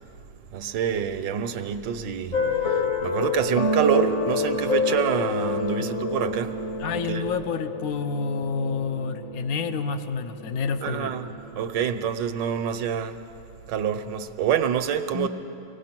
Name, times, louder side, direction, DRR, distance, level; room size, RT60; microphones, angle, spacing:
voice 1, 0.5-6.5 6.9-7.3 10.8-11.3 11.5-13.2 13.7-15.3, right 8 dB, 85° right, 1.5 m, -27 dB
sound 1, 2.3-11.5, left 3 dB, 45° left, 1.5 m, -28 dB
voice 2, 6.8-11.2 15.1-15.3, left 5 dB, 60° left, 1.1 m, -29 dB
24.5 x 18.0 x 5.9 m
omnidirectional pair, 1.9 m